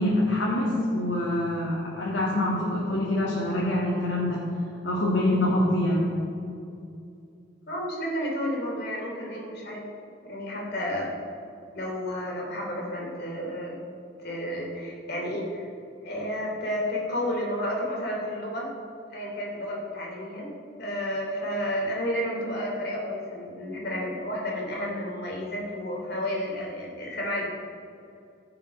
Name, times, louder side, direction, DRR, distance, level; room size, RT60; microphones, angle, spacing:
voice 1, 0.0-4.4 4.8-6.1, left 1 dB, 85° left, -5 dB, 2.0 m, -25 dB
voice 2, 7.7-9.8 10.3-11.1 11.7-13.9 14.2-15.6 16.0-18.7 19.1-20.5 20.8-27.4, equal, 60° left, -2 dB, 2.9 m, -31 dB
16.5 x 5.9 x 5.3 m, 2.5 s
head